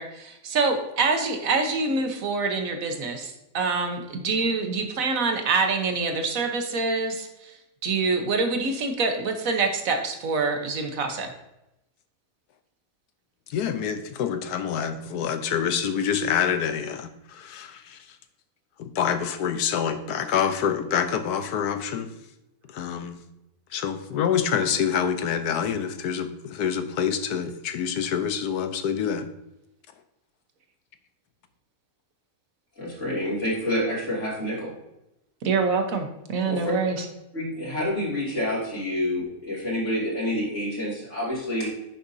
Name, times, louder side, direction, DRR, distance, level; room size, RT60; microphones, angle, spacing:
voice 1, 0.0-7.5 7.8-11.3 35.4-37.0, right 4 dB, 65° right, 5 dB, 1.4 m, -26 dB
voice 2, 13.5-18.0 18.8-22.1 22.7-23.2 23.7-29.3, left 8 dB, 90° left, 9 dB, 1.3 m, -26 dB
voice 3, 32.8-34.7 36.5-36.7 37.3-41.7, left 1 dB, 50° left, -5 dB, 3.0 m, -28 dB
10.0 x 6.7 x 2.7 m, 0.90 s
omnidirectional pair, 1.6 m